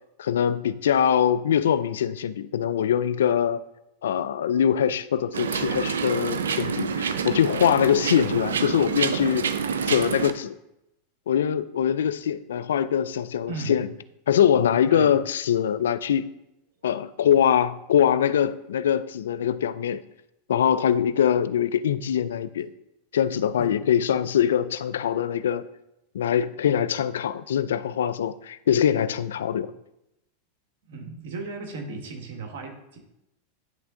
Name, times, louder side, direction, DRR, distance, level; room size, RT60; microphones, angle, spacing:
voice 1, 0.2-3.6 4.0-9.5 9.9-10.6 11.3-13.9 14.3-16.3 16.8-20.0 20.5-22.7 23.1-25.7 26.1-29.7, left 9 dB, 80° left, 0.3 m, -23 dB
sound 1, 5.3-10.3, right 6 dB, 90° right, 0.4 m, -27 dB
voice 2, 13.5-13.8 14.9-15.2 23.6-23.8 24.1-24.3 26.7-26.9 29.5-29.7 30.9-33.0, right 4 dB, 70° right, 1.4 m, -36 dB
10.0 x 3.5 x 3.7 m
hypercardioid pair, 105°, 0 cm